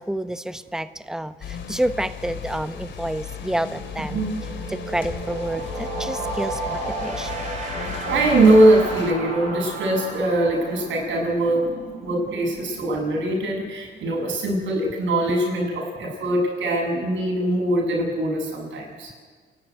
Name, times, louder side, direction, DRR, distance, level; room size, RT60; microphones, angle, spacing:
voice 1, 0.0-4.3 4.7-7.3 12.9-13.0, right 1 dB, 5° right, 11 dB, 1.0 m, -29 dB
sound 1, 1.4-9.1, left 7 dB, 65° left, 2.7 m, -35 dB
sound 2, 3.0-3.1 3.4-14.0, right 3 dB, 35° right, 5.5 m, -34 dB
voice 2, 4.0-4.4 8.0-11.6 12.0-19.1, right 1 dB, 70° right, 0 dB, 7.9 m, -21 dB
28.5 x 12.0 x 9.5 m, 1.6 s
cardioid pair, 90°, 20 cm